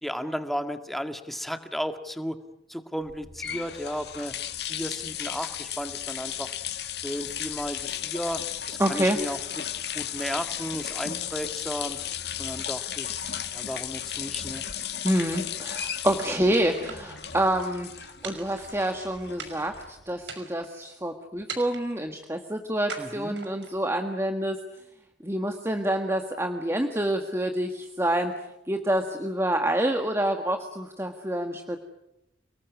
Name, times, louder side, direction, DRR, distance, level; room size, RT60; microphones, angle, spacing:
voice 1, 0.0-2.4 2.7-4.3 4.7-6.5 7.0-8.4 8.7-9.4 9.9-12.0 12.4-13.2 13.5-14.6 23.0-23.4, equal, ahead, 7 dB, 1.8 m, -34 dB
sound 1, 3.1-20.1, left 10 dB, 65° left, 2.0 m, -35 dB
voice 2, 8.8-9.2 15.0-24.6 25.2-28.3 28.7-31.8, right 1 dB, 15° right, 5 dB, 1.6 m, -27 dB
sound 2, 16.5-17.4 18.2-19.0 19.4-19.8 20.2-20.8 21.5-22.0 22.9-23.8, right 5 dB, 80° right, 5.7 m, -41 dB
29.5 x 20.0 x 9.5 m, 0.87 s
head